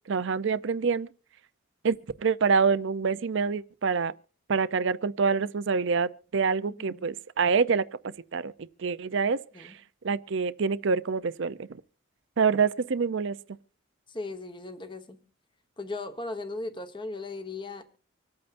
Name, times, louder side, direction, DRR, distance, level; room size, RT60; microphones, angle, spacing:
voice 1, 0.1-1.1 1.8-4.1 4.5-8.5 8.8-9.7 10.0-11.7 12.4-13.4, right 5 dB, 55° right, 0.5 m, -26 dB
voice 2, 6.7-7.0 9.5-9.8 14.1-15.2 15.8-17.8, left 2 dB, 20° left, 1.2 m, -37 dB
25.5 x 8.7 x 2.6 m
head